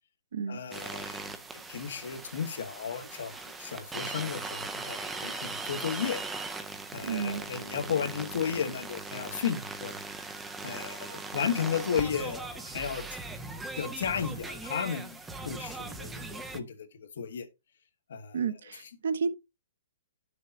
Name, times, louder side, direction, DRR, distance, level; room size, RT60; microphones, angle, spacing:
voice 1, 0.5-6.2 6.9-10.0 10.6-13.1 13.8-15.2 15.4-17.5 18.1-18.9, left 7 dB, 60° left, 1.5 m, -34 dB
sound 1, 0.7-16.6, right 3 dB, 5° right, 0.4 m, -39 dB
voice 2, 7.0-7.4 18.3-19.3, right 6 dB, 60° right, 1.0 m, -31 dB
10.5 x 6.5 x 2.7 m
hypercardioid pair, 180°, 0 cm